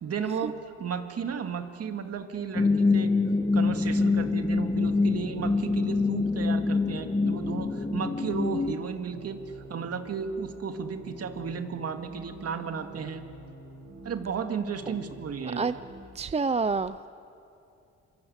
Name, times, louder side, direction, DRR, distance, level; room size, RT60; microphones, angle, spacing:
voice 1, 0.0-3.1 3.5-9.4 9.7-13.2 14.0-15.7, right 6 dB, 55° right, 6 dB, 2.3 m, -34 dB
sound 1, 2.4-16.0, right 2 dB, 75° right, 5.1 m, -46 dB
sound 2, 2.5-8.7, left 3 dB, 20° left, 1.2 m, -25 dB
voice 2, 16.2-17.1, right 4 dB, 20° right, 14 dB, 0.5 m, -27 dB
26.5 x 25.0 x 8.2 m, 2.6 s
cardioid pair, 90°, 30 cm